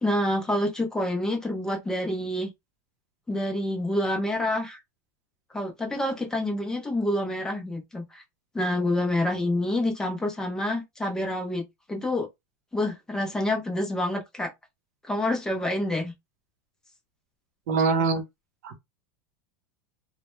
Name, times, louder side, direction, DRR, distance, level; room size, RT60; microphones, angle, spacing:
voice 1, 0.0-2.5 3.3-4.8 5.5-8.2 8.5-12.3 12.7-14.5 15.0-16.1, left 1 dB, 5° left, 0.5 m, -27 dB
voice 2, 17.7-18.2 18.6-18.8, right 4 dB, 70° right, 0.6 m, -23 dB
2.1 x 2.0 x 3.0 m
supercardioid pair, 160°, 9 cm